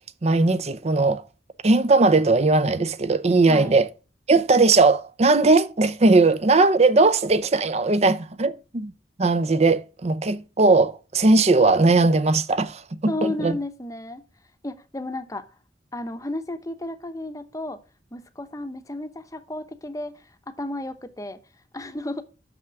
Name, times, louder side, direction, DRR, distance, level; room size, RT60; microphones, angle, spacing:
voice 1, 0.2-1.2 1.6-3.9 4.3-8.9 9.2-13.6, right 3 dB, 40° right, 0.6 m, -19 dB
voice 2, 3.5-3.8 13.1-14.2 14.6-15.5 15.9-17.8 18.1-21.4 21.7-22.2, left 1 dB, 20° left, 0.8 m, -33 dB
6.6 x 6.0 x 5.9 m
head